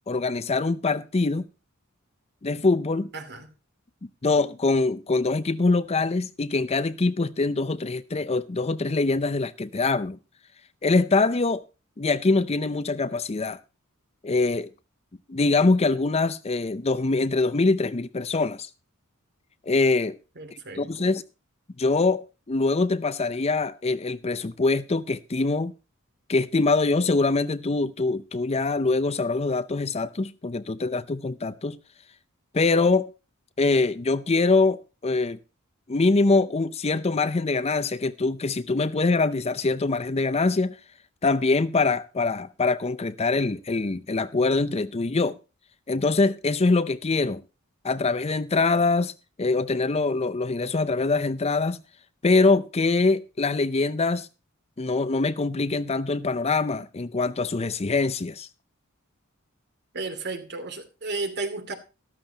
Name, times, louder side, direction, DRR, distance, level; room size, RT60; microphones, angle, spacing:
voice 1, 0.1-1.5 2.4-3.1 4.2-10.2 10.8-11.6 12.0-13.6 14.2-14.7 15.3-18.7 19.7-20.2 20.5-21.2 21.8-25.7 26.3-31.8 32.5-33.1 33.6-35.4 35.9-40.8 41.2-45.4 45.9-47.4 47.8-49.1 49.4-51.8 52.2-54.3 54.8-58.5, left 3 dB, 30° left, 0.5 m, -24 dB
voice 2, 3.1-3.5 20.4-21.1 59.9-61.7, right 3 dB, 50° right, 2.5 m, -33 dB
13.5 x 13.5 x 2.8 m
head